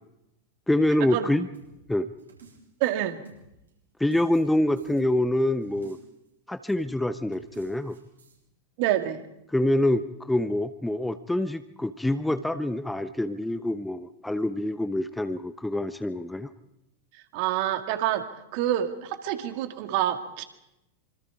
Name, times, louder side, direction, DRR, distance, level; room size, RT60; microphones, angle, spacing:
voice 1, 0.7-1.5 1.9-2.1 4.0-6.0 6.5-8.0 9.5-16.5, left 1 dB, 5° left, 12 dB, 0.8 m, -26 dB
sound 1, 1.5-3.7 4.1-6.3 6.7-6.9 7.3-8.4, right 4 dB, 75° right, 7.9 m, -54 dB
voice 2, 2.8-3.2 8.8-9.2 17.1-18.3 18.5-20.4, right 12 dB, 45° right, 7 dB, 2.2 m, -27 dB
26.0 x 25.0 x 4.7 m, 0.89 s
figure-of-eight pair, 90°, 0 cm